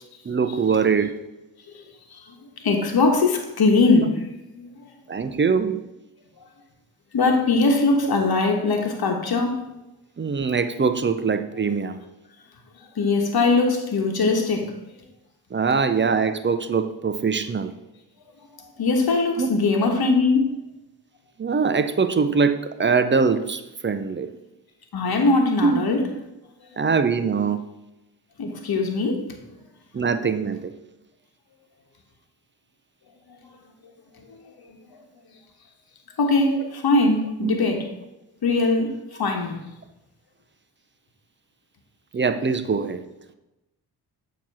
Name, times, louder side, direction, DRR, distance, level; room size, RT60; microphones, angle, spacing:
voice 1, 0.3-1.2 5.1-5.8 10.2-12.0 15.5-17.7 19.4-19.5 21.4-24.3 25.6-25.8 26.8-27.6 29.9-30.7 37.4-37.6 42.1-43.0, right 5 dB, 25° right, 0.6 m, -22 dB
voice 2, 2.6-4.3 4.5-4.7 7.1-9.6 13.0-14.8 18.6-20.5 24.9-26.0 26.7-26.8 28.4-29.4 36.2-37.9 38.4-38.9 39.2-39.6, left 3 dB, 55° left, 1.3 m, -21 dB
7.2 x 3.0 x 5.5 m
supercardioid pair, 55°, 44 cm